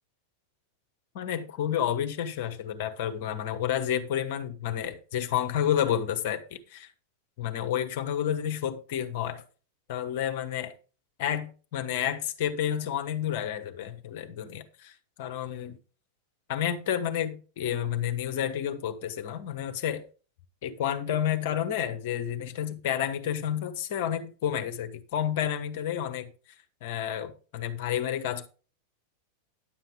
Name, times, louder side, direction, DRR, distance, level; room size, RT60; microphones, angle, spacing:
voice 1, 1.1-6.9 7.4-9.4 9.9-10.7 11.2-14.9 15.2-15.8 16.5-20.1 20.6-26.3 26.8-28.5, left 10 dB, 50° left, 1.1 m, -30 dB
10.5 x 7.3 x 3.7 m
figure-of-eight pair, 90°, 0 cm